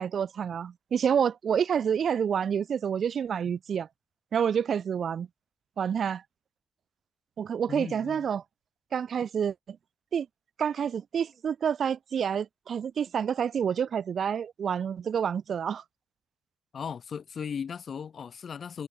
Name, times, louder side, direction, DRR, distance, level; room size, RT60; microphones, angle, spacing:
voice 1, 0.0-3.9 4.3-5.3 5.8-6.2 7.4-8.4 8.9-9.8 10.1-10.3 10.6-15.8, right 7 dB, 55° right, 0.7 m, -28 dB
voice 2, 7.7-8.3 16.7-18.9, left 7 dB, 50° left, 2.8 m, -37 dB
cardioid pair, 95°, 0 cm